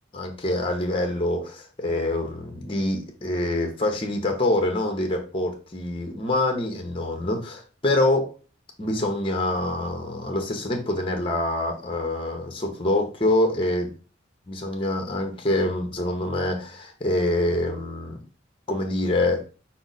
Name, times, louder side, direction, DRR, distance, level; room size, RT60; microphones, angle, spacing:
voice 1, 0.1-8.3 8.8-13.9 14.5-18.2 18.7-19.4, left 1 dB, 30° left, 1.0 m, -25 dB
6.0 x 2.1 x 4.0 m
head